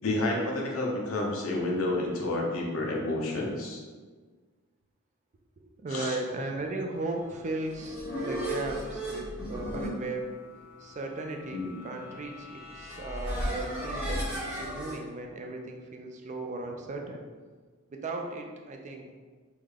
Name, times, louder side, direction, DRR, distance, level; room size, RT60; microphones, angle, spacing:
voice 1, 0.0-3.8 5.9-6.2 11.5-11.8, left 2 dB, 70° left, -1 dB, 0.6 m, -30 dB
voice 2, 5.8-10.3 10.8-17.2 17.9-19.1, right 2 dB, 35° right, 2 dB, 0.3 m, -36 dB
sound 1, 7.4-15.0, equal, 5° right, 0.9 m, -36 dB
3.6 x 2.1 x 3.3 m, 1.4 s
head